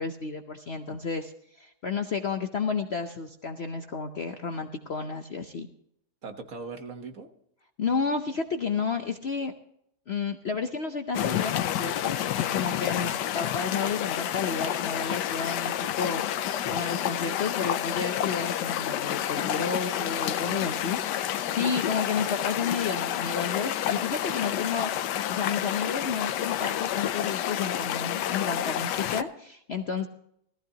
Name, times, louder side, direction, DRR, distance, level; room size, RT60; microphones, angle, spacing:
voice 1, 0.0-5.7 7.8-9.5 10.1-24.9 25.3-30.1, left 5 dB, 50° left, 6 dB, 0.8 m, -31 dB
voice 2, 6.2-7.3 16.6-16.8 20.4-20.9, right 3 dB, 50° right, 6 dB, 1.6 m, -41 dB
sound 1, 11.1-29.2, left 11 dB, 85° left, 1.3 m, -29 dB
18.0 x 14.5 x 2.9 m, 0.74 s
omnidirectional pair, 1.8 m